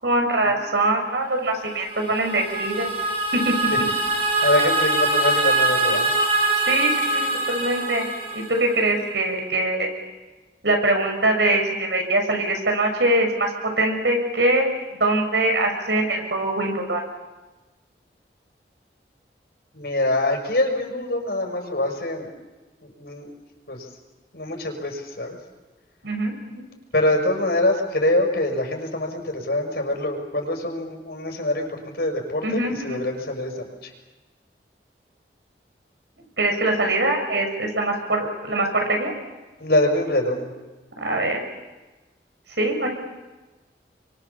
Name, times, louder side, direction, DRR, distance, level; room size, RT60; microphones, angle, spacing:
voice 1, 0.0-2.9 3.3-3.5 6.7-8.1 8.3-9.9 10.6-13.5 13.8-14.7 15.0-17.0 26.0-26.6 32.4-33.0 36.4-39.1 41.0-41.4 42.6-42.9, right 2 dB, 85° right, 3 dB, 6.6 m, -23 dB
sound 1, 1.8-8.9, right 2 dB, 35° right, 5.6 m, -23 dB
voice 2, 4.4-6.1 19.7-22.3 22.8-23.3 23.7-23.9 24.3-25.4 26.9-33.9 39.6-40.5, left 1 dB, 65° left, 2 dB, 6.3 m, -24 dB
30.0 x 24.5 x 7.3 m, 1.2 s
head